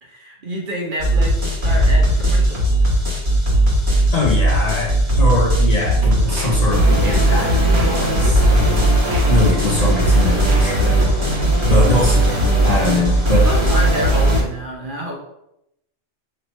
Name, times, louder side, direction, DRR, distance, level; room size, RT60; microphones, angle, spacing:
voice 1, 0.0-2.6 11.6-12.0 13.4-15.2, equal, 50° right, 0 dB, 0.8 m, -28 dB
sound 1, 1.0-14.4, right 1 dB, 25° right, 1.1 m, -17 dB
voice 2, 4.1-8.9 9.3-11.1 11.7-13.7, left 2 dB, 40° left, -3 dB, 0.7 m, -22 dB
sound 2, 6.0-11.5, right 2 dB, 75° right, 1.2 m, -30 dB
3.2 x 2.9 x 4.1 m, 0.81 s
omnidirectional pair, 1.2 m